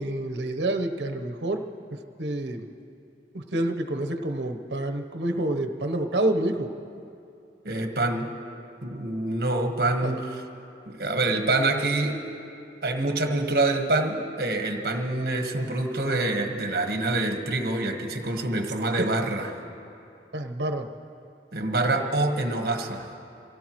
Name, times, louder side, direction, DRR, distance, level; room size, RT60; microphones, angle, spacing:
voice 1, 0.0-1.6 2.2-2.6 3.3-6.7 10.0-10.2 20.3-20.9, right 1 dB, 80° right, 5 dB, 1.0 m, -28 dB
voice 2, 7.6-8.4 8.8-10.4 10.9-12.2 12.8-19.5 21.5-23.1, right 2 dB, 60° right, 4 dB, 1.4 m, -26 dB
25.5 x 17.0 x 3.1 m, 2.7 s
head